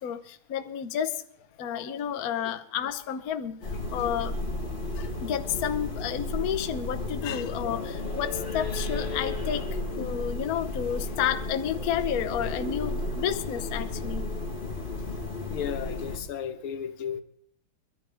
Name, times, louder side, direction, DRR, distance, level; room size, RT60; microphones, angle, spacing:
voice 1, 0.0-1.2 1.6-3.6 3.9-4.4 5.0-14.3, left 9 dB, 55° left, 1.1 m, -31 dB
sound 1, 3.6-16.2, left 2 dB, 25° left, 3.2 m, -33 dB
voice 2, 15.5-17.2, left 8 dB, 90° left, 1.9 m, -34 dB
23.0 x 13.0 x 3.4 m
omnidirectional pair, 2.3 m